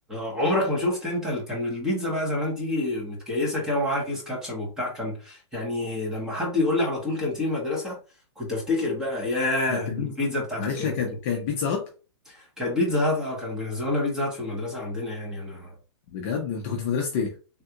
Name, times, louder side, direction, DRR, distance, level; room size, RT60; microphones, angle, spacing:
voice 1, 0.1-8.0 8.4-11.2 12.3-15.7, left 2 dB, 5° right, -3 dB, 0.8 m, -27 dB
voice 2, 9.7-10.1 10.6-11.9 16.1-17.3, left 6 dB, 25° left, 0 dB, 0.5 m, -28 dB
3.4 x 2.3 x 2.8 m, 0.34 s
hypercardioid pair, 165°, 15 cm